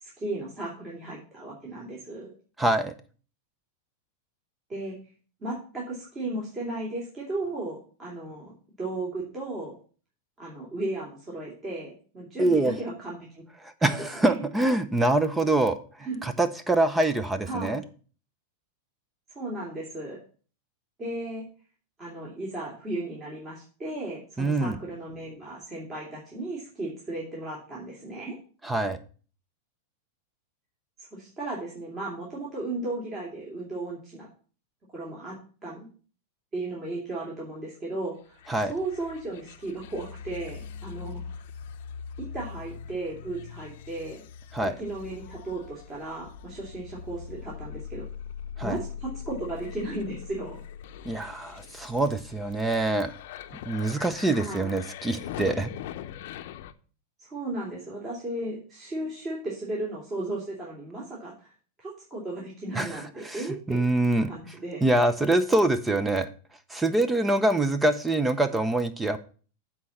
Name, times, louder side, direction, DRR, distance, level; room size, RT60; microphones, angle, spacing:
voice 1, 0.0-2.3 4.7-5.0 5.4-8.5 8.8-9.7 10.4-13.4 13.8-14.4 16.0-16.2 17.4-17.8 19.3-20.2 21.0-21.4 22.0-28.4 31.1-34.3 34.9-35.3 35.6-35.9 36.5-41.2 42.3-44.2 44.6-48.0 48.6-50.6 54.3-54.7 57.2-61.5 61.8-63.8 64.2-64.9, right 2 dB, 25° right, -5 dB, 2.9 m, -35 dB
voice 2, 2.6-2.9 12.4-12.8 13.6-15.8 16.2-17.8 24.4-24.8 28.6-29.0 38.5-38.7 44.5-44.8 48.6-48.8 51.0-53.1 53.7-55.7 62.7-64.3 64.8-66.3 66.7-69.2, right 2 dB, 10° right, 11 dB, 0.6 m, -25 dB
sound 1, 38.4-56.7, left 8 dB, 65° left, 0.7 m, -41 dB
8.4 x 4.3 x 7.1 m, 0.40 s
supercardioid pair, 140°, 0 cm